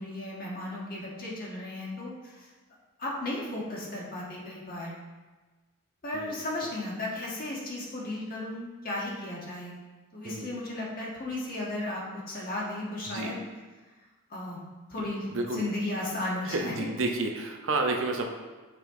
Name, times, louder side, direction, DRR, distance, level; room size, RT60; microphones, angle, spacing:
voice 1, 0.0-2.5 3.0-5.0 6.0-9.7 10.1-13.4 14.3-14.6 14.9-15.3 15.5-16.9, left 1 dB, 40° left, -4 dB, 1.5 m, -35 dB
voice 2, 15.3-15.6 16.4-18.3, right 2 dB, 60° right, 3 dB, 0.7 m, -30 dB
6.6 x 5.3 x 3.8 m, 1.3 s
head